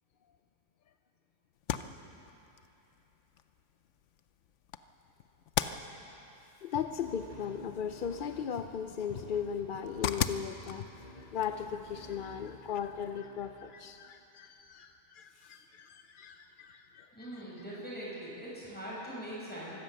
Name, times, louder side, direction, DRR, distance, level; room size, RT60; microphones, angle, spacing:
sound 1, 1.5-13.2, left 9 dB, 75° left, 1.0 m, -41 dB
voice 1, 6.6-17.4, left 7 dB, 55° left, 8 dB, 0.6 m, -38 dB
sound 2, 6.7-14.2, left 2 dB, 35° left, 1.1 m, -52 dB
voice 2, 17.1-19.8, right 1 dB, 5° left, -7 dB, 6.5 m, -42 dB
24.0 x 13.5 x 8.0 m, 2.9 s
omnidirectional pair, 1.3 m